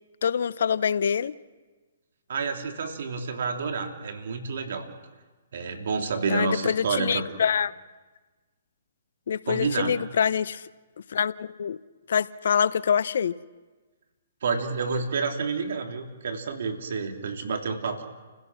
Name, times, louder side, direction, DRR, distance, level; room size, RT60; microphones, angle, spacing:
voice 1, 0.2-1.3 6.3-7.7 9.3-10.6 11.1-11.8 12.1-13.4, left 7 dB, 65° left, 17 dB, 0.7 m, -25 dB
voice 2, 2.3-4.9 5.5-7.4 9.5-10.0 14.4-18.0, right 4 dB, 65° right, 4 dB, 3.2 m, -29 dB
30.0 x 16.5 x 6.2 m, 1.3 s
hypercardioid pair, 140°, 0 cm